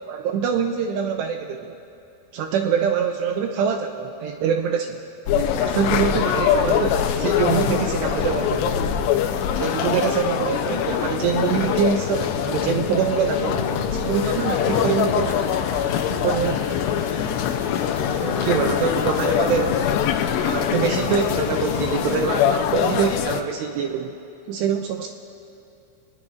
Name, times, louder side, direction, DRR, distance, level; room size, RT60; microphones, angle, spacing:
voice 1, 0.1-1.8 2.3-5.0 5.6-8.7 9.5-13.6 13.9-15.6 16.1-16.6 18.2-19.8 20.4-24.2 24.5-25.1, right 7 dB, 85° right, 4 dB, 2.5 m, -24 dB
sound 1, 5.3-23.4, left 9 dB, 90° left, 2.4 m, -23 dB
sound 2, 8.0-10.9 11.6-16.4 16.7-21.5, right 1 dB, 35° right, 1.9 m, -40 dB
sound 3, 14.2-22.2, left 1 dB, 30° left, 2.3 m, -38 dB
27.0 x 19.5 x 2.5 m, 2.8 s
omnidirectional pair, 5.7 m